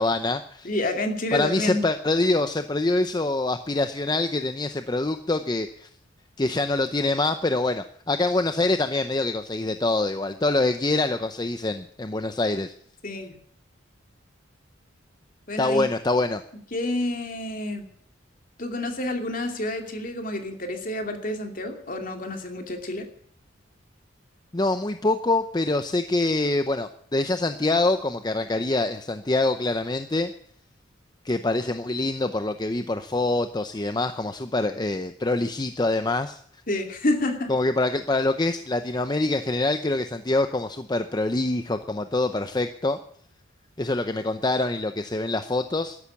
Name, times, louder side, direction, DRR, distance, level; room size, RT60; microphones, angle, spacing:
voice 1, 0.0-0.7 1.3-5.9 6.4-12.7 15.6-16.4 24.5-30.3 31.2-36.4 37.5-43.0 43.8-46.0, left 2 dB, 20° left, 9 dB, 0.6 m, -25 dB
voice 2, 0.6-1.8 13.0-13.4 15.5-15.9 16.7-17.9 18.6-23.1 36.7-37.5, left 1 dB, 45° left, 4 dB, 2.5 m, -29 dB
13.0 x 11.5 x 8.3 m, 0.64 s
head